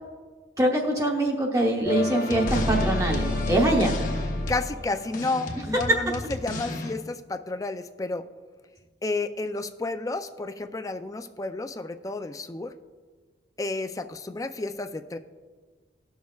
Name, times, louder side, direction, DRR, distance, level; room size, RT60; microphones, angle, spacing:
voice 1, 0.6-4.0 5.9-6.0, right 1 dB, 20° right, -1 dB, 0.9 m, -23 dB
sound 1, 1.9-6.9, left 2 dB, 45° left, 0.9 m, -29 dB
voice 2, 4.5-8.2 9.0-12.7 13.6-15.2, left 3 dB, 20° left, 9 dB, 0.4 m, -31 dB
18.0 x 6.3 x 2.3 m, 1.5 s
head